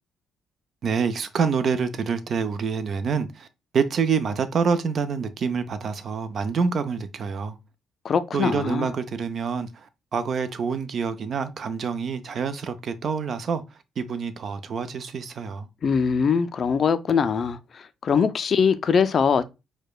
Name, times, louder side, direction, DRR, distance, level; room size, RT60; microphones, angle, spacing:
voice 1, 0.8-3.5 3.7-7.6 8.3-13.6 14.0-15.7, right 5 dB, 55° right, 0.4 m, -26 dB
voice 2, 8.0-8.9 15.8-19.4, left 6 dB, 50° left, 0.3 m, -22 dB
4.7 x 2.2 x 2.3 m
cardioid pair, 90°, 0 cm